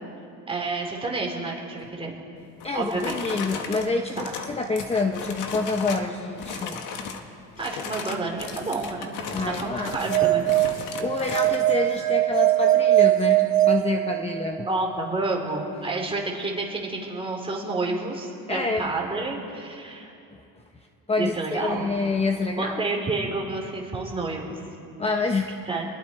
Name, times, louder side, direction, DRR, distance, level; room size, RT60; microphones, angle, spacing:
voice 1, 0.5-2.1 2.7-3.2 7.6-9.1 9.6-10.5 14.6-20.1 21.2-22.0 22.6-24.6 25.7-25.8, right 3 dB, 15° right, 0 dB, 3.7 m, -29 dB
sound 1, 2.6-6.1 6.4-7.2 7.6-11.6, left 6 dB, 70° left, 2.0 m, -36 dB
voice 2, 2.6-6.8 9.3-10.2 11.0-14.7 18.5-18.9 20.3-20.4 21.1-22.8 25.0-25.5, left 3 dB, 20° left, 4 dB, 1.0 m, -27 dB
sound 2, 9.8-14.7, right 15 dB, 55° right, 1.3 m, -21 dB
28.5 x 21.0 x 4.5 m, 2.6 s
cardioid pair, 135°, 33 cm